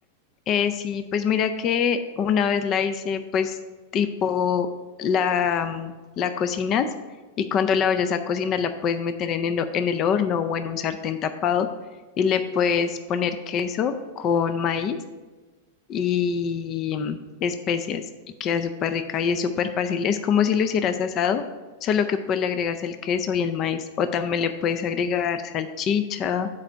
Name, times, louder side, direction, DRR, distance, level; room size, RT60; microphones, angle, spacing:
voice 1, 0.5-3.6 3.9-4.7 5.0-6.9 7.4-11.7 12.2-15.0 15.9-18.0 18.4-21.4 21.8-26.5, left 7 dB, 30° left, 9 dB, 0.4 m, -24 dB
7.4 x 4.5 x 6.2 m, 1.3 s
supercardioid pair, 150°, 0 cm